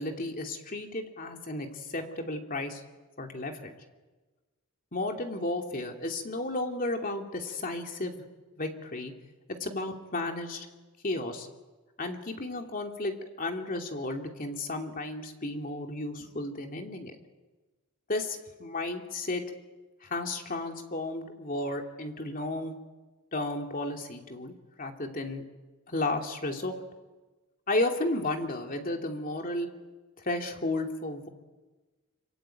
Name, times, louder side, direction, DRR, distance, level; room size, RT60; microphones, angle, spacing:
voice 1, 0.0-2.8 3.2-3.7 4.9-8.2 8.6-9.1 9.6-10.7 11.0-11.5 12.0-17.1 18.1-19.4 20.0-22.7 23.3-25.4 25.9-26.8 27.7-29.7 30.2-31.3, left 2 dB, 40° left, 3 dB, 2.8 m, -33 dB
25.5 x 24.5 x 9.2 m, 1.2 s
head